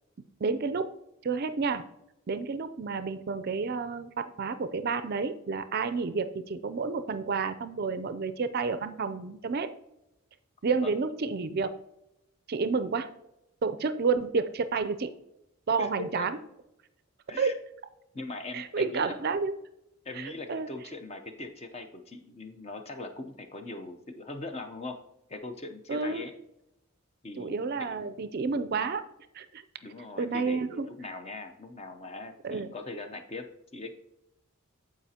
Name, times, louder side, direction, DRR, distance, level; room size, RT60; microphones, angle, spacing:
voice 1, 0.4-0.9 1.2-1.9 2.3-9.7 10.6-11.7 12.5-13.1 13.6-15.1 15.7-16.4 17.4-17.6 18.5-19.5 20.1-20.7 25.9-26.2 27.4-29.0 29.3-29.6 30.2-30.9 32.4-32.7, right 4 dB, 45° right, 11 dB, 0.4 m, -30 dB
voice 2, 18.1-19.2 20.0-25.0 25.3-26.3 27.2-28.1 29.8-33.4 33.7-33.9, left 2 dB, 30° left, 6 dB, 0.7 m, -41 dB
14.0 x 4.9 x 2.8 m, 0.87 s
head